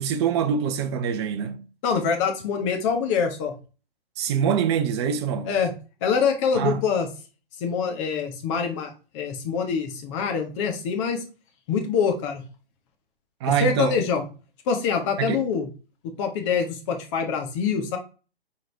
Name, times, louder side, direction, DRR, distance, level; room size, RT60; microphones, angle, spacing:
voice 1, 0.0-1.6 4.2-5.5 6.5-6.8 13.4-14.0 15.2-15.4, right 8 dB, 25° right, 0.8 m, -24 dB
voice 2, 1.8-3.5 5.5-5.7 6.0-7.1 7.6-11.2 11.7-12.4 13.6-14.2 14.7-15.7 16.0-18.0, left 6 dB, 30° left, 1.5 m, -25 dB
9.1 x 3.9 x 3.4 m
hypercardioid pair, 135°, 31 cm